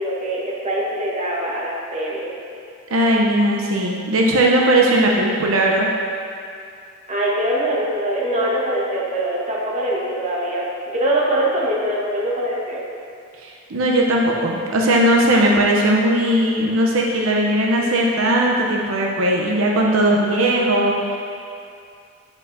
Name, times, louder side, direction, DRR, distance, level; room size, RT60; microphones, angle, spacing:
voice 1, 0.0-2.3 7.1-12.8, right 1 dB, 35° right, -5 dB, 1.1 m, -23 dB
voice 2, 2.9-5.9 13.4-21.2, right 1 dB, 85° right, -1 dB, 0.6 m, -18 dB
9.3 x 5.2 x 2.6 m, 2.5 s
head